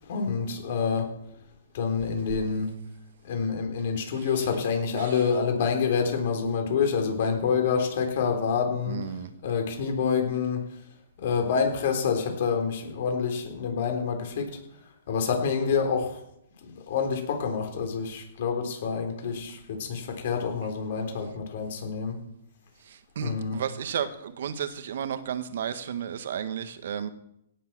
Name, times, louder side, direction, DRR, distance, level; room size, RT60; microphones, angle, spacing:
voice 1, 0.1-1.1 1.7-2.7 3.2-9.0 9.4-10.6 11.2-14.6 15.1-16.2 16.6-22.2 23.2-23.6, left 6 dB, 60° left, 4 dB, 3.8 m, -27 dB
voice 2, 8.9-9.3 22.8-27.1, right 8 dB, 65° right, 11 dB, 1.4 m, -33 dB
17.5 x 7.4 x 6.1 m, 0.79 s
hypercardioid pair, 145°, 0 cm